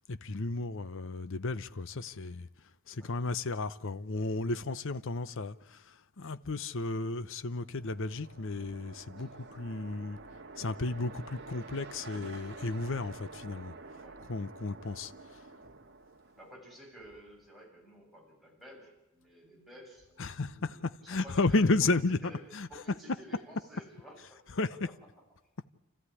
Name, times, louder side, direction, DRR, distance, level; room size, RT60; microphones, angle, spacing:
voice 1, 0.0-2.5 2.9-10.2 10.6-13.7 14.3-15.1 20.2-23.2 24.5-24.9, left 3 dB, 65° left, 0.8 m, -33 dB
sound 1, 7.7-16.7, right 3 dB, 55° right, 1.8 m, -49 dB
voice 2, 9.1-9.7 14.0-14.3 16.4-21.7 22.2-24.4 24.9-25.0, equal, ahead, 7.1 m, -53 dB
29.5 x 14.0 x 9.9 m
head